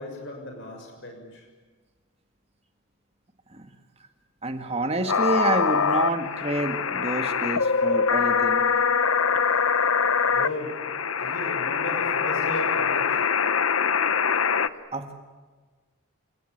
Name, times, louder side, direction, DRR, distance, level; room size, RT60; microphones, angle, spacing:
voice 1, 0.0-1.5 10.2-13.3, left 1 dB, 60° left, 3 dB, 6.7 m, -36 dB
voice 2, 4.4-8.6 14.9-15.2, right 1 dB, 30° right, 6 dB, 1.9 m, -28 dB
sound 1, 5.1-14.7, left 6 dB, 85° left, 1.0 m, -23 dB
29.5 x 19.0 x 9.9 m, 1.4 s
head